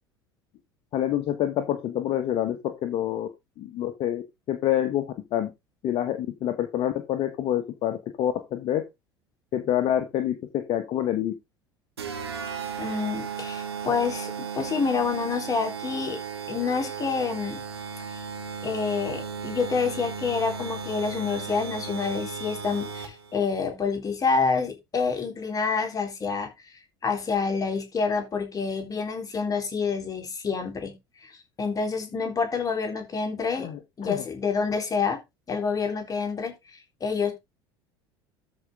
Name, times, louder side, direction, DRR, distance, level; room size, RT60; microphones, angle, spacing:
voice 1, 0.9-3.3 3.6-5.1 5.3-5.5 5.8-8.8 9.5-11.3 33.5-34.3, left 11 dB, 45° left, 1.5 m, -27 dB
sound 1, 12.0-23.4, right 6 dB, 80° right, 2.0 m, -35 dB
voice 2, 12.8-16.2 16.5-17.6 18.6-26.5 27.0-31.0 31.2-31.3 31.6-33.7 34.0-35.2 35.5-37.3, left 5 dB, 25° left, 3.7 m, -28 dB
13.0 x 5.3 x 3.7 m
figure-of-eight pair, 70°, 13 cm